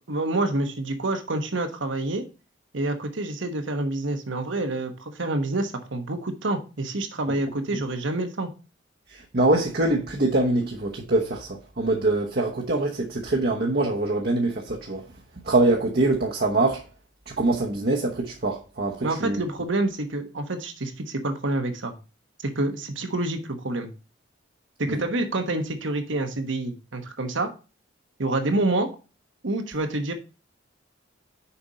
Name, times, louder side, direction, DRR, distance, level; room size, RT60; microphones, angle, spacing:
voice 1, 0.1-2.2 2.7-8.5 19.0-21.9 22.4-23.9 24.8-27.5 28.2-28.9 29.4-30.1, right 2 dB, 75° right, 1.2 m, -27 dB
voice 2, 9.3-15.0 15.5-16.8 17.3-19.4 24.9-25.0, right 2 dB, 50° right, 1.0 m, -24 dB
7.0 x 5.2 x 4.0 m
head